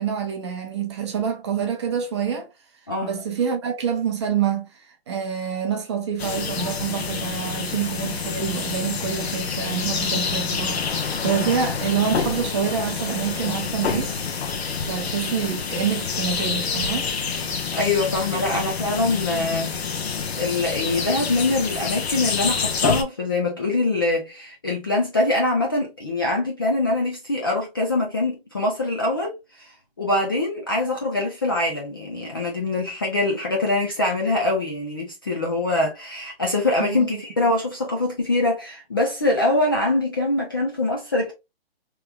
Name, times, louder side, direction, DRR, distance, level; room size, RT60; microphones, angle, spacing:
voice 1, 0.0-2.5 3.0-4.7 5.1-14.1 14.8-17.1 36.8-37.1, right 7 dB, 25° right, 0.7 m, -26 dB
sound 1, 6.2-23.0, left 5 dB, 85° left, 0.9 m, -27 dB
voice 2, 17.7-19.7 20.3-29.7 30.0-41.3, left 2 dB, 25° left, 0.4 m, -23 dB
3.3 x 3.0 x 2.2 m
hypercardioid pair, 165°, 31 cm